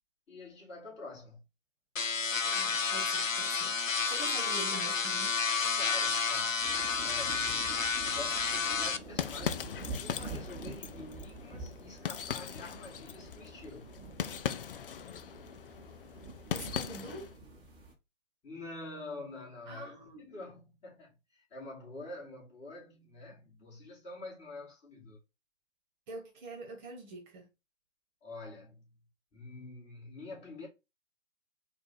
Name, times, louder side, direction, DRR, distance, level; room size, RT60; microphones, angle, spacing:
voice 1, 0.3-1.4 5.7-6.7 7.0-7.8 8.1-13.9 18.4-25.2 28.2-29.0 29.3-30.7, left 2 dB, 15° left, 2.4 m, -47 dB
sound 1, 2.0-9.0, left 5 dB, 90° left, 0.7 m, -31 dB
voice 2, 2.4-5.3 16.5-17.3 19.7-20.2 26.1-27.5, right 2 dB, 35° right, 1.2 m, -45 dB
sound 2, 6.6-17.9, right 3 dB, 10° right, 1.0 m, -47 dB
sound 3, 8.7-17.4, left 8 dB, 45° left, 0.4 m, -40 dB
4.5 x 2.6 x 4.4 m
figure-of-eight pair, 125°, 38 cm